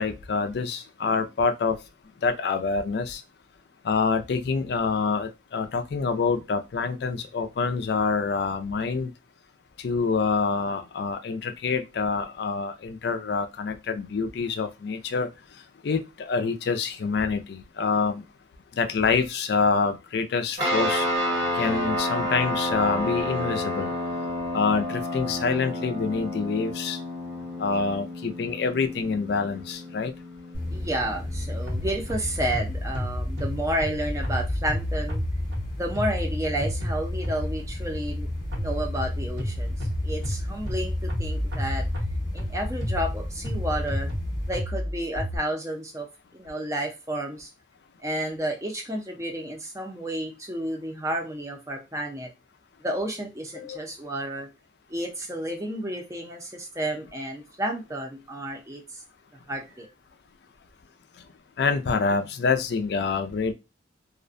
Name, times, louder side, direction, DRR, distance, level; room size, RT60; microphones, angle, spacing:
voice 1, 0.0-1.8 2.2-3.2 3.8-9.1 9.8-15.3 15.8-18.2 18.8-21.1 21.5-23.9 24.5-27.0 27.6-30.1 53.6-53.8 61.6-63.5, left 4 dB, 60° left, 7 dB, 0.4 m, -26 dB
sound 1, 20.6-32.4, left 1 dB, 60° right, 1.0 m, -30 dB
sound 2, 30.5-44.5, left 1 dB, 25° left, 0.8 m, -32 dB
voice 2, 30.7-35.2 35.8-38.3 38.5-41.8 42.3-44.1 44.5-46.1 46.3-47.5 48.0-52.3 52.8-54.5 54.9-59.0 59.5-59.9, right 1 dB, 15° right, 2 dB, 0.5 m, -31 dB
sound 3, 31.7-37.7 38.5-45.4, equal, 80° right, 1.1 m, -32 dB
2.4 x 2.2 x 2.5 m, 0.25 s
head